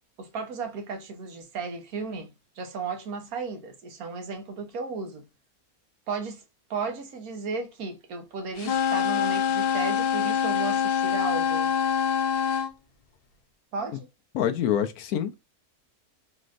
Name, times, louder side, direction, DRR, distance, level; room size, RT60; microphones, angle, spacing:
voice 1, 0.2-5.3 6.1-6.4 6.7-11.7 13.7-14.1, right 4 dB, 80° right, 1.4 m, -34 dB
sound 1, 8.6-12.7, left 8 dB, 60° left, 0.6 m, -25 dB
voice 2, 14.3-15.4, left 10 dB, 85° left, 1.2 m, -26 dB
4.2 x 3.1 x 2.5 m
omnidirectional pair, 1.5 m